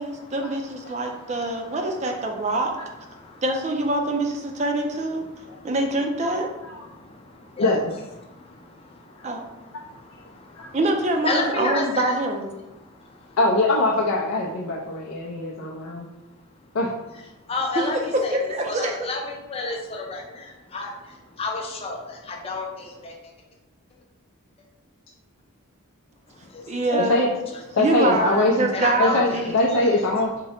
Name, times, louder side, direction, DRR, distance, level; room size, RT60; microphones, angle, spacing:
voice 1, 0.0-2.7 3.4-5.2 5.6-6.5 9.2-9.4 10.7-12.5 17.8-19.0 26.7-27.2 27.8-29.6, right 2 dB, 30° right, 3 dB, 0.4 m, -25 dB
voice 2, 11.2-12.2 17.5-20.5 20.7-20.9 21.4-23.1 26.5-27.2 28.7-29.9, left 3 dB, 25° left, 0 dB, 0.5 m, -30 dB
voice 3, 13.4-16.1 16.7-16.9 26.9-27.3 27.8-28.5 29.0-30.4, left 2 dB, 80° left, -2 dB, 0.4 m, -22 dB
3.6 x 2.0 x 4.2 m, 1.0 s
head